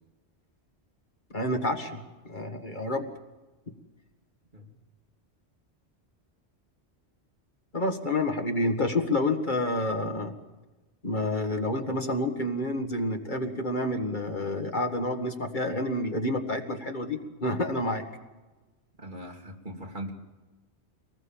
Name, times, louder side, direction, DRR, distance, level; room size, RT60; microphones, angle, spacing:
voice 1, 1.3-3.1 7.7-10.3 11.0-18.0, left 1 dB, 45° left, 6 dB, 1.9 m, -29 dB
voice 2, 19.0-20.1, right 1 dB, 45° right, 2 dB, 3.1 m, -40 dB
25.0 x 19.5 x 7.3 m, 1.2 s
omnidirectional pair, 1.1 m